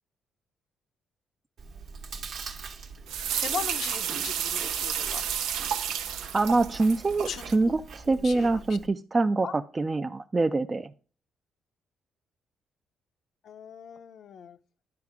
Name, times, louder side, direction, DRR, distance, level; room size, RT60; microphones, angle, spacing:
Chewing mastication, 1.6-8.9, right 5 dB, 65° right, 1.1 m, -43 dB
voice 1, 3.1-5.3 7.2-7.6 8.1-8.6 9.4-9.5 13.4-14.6, left 8 dB, 65° left, 0.6 m, -39 dB
sound 1, 3.1-7.6, right 9 dB, 85° right, 0.6 m, -31 dB
voice 2, 6.3-10.9, right 3 dB, 25° right, 0.4 m, -25 dB
10.5 x 4.8 x 3.5 m
cardioid pair, 90°, 0 cm